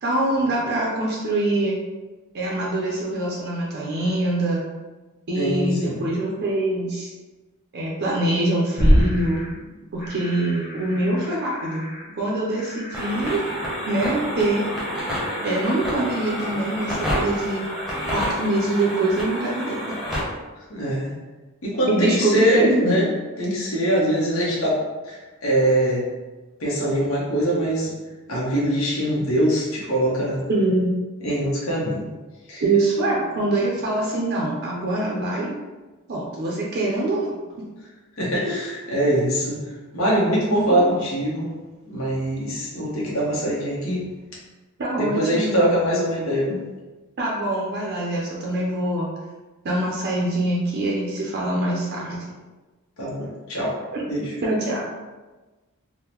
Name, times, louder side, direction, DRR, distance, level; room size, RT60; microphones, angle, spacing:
voice 1, 0.0-1.8 2.3-4.6 5.3-7.1 7.7-9.4 9.9-11.9 12.2-13.4 13.9-14.7 15.4-17.7 18.1-20.0 21.9-23.0 30.5-30.9 32.6-35.5 36.1-37.4 40.7-40.8 44.8-45.7 47.2-49.1 49.6-52.2 53.9-54.0 54.4-54.8, right 2 dB, 50° right, -3 dB, 0.5 m, -24 dB
voice 2, 5.4-6.0 20.7-21.1 21.6-23.1 23.4-24.8 25.1-26.0 26.6-27.9 28.3-30.4 31.2-32.0 32.5-32.6 38.2-39.6 39.9-41.5 41.9-44.0 45.0-46.6 53.0-53.7 54.1-54.3, equal, 70° left, -5 dB, 0.9 m, -23 dB
sound 1, 8.8-15.7, equal, 40° left, 0.6 m, -27 dB
sound 2, 12.9-20.2, equal, 5° right, 0.8 m, -29 dB
3.6 x 2.1 x 2.9 m, 1.2 s
head